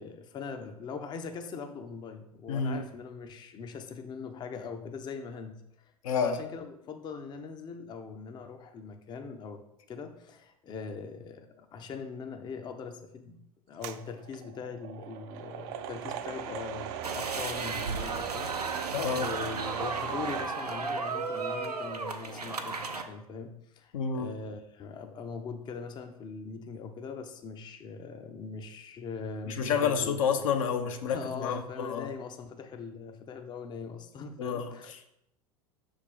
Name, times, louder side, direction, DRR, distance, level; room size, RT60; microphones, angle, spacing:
voice 1, 0.0-9.6 9.9-18.7 19.1-30.2 31.1-35.1, left 5 dB, 20° left, 6 dB, 0.6 m, -41 dB
voice 2, 2.5-2.8 6.0-6.4 18.9-19.3 23.9-24.4 29.4-32.1 34.4-34.7, left 6 dB, 60° left, 6 dB, 0.7 m, -29 dB
sound 1, 13.8-20.5, right 9 dB, 45° right, 0.5 m, -39 dB
sound 2, 17.0-23.0, right 4 dB, 85° right, 0.6 m, -34 dB
6.4 x 3.6 x 5.4 m, 0.79 s
figure-of-eight pair, 85°, 19 cm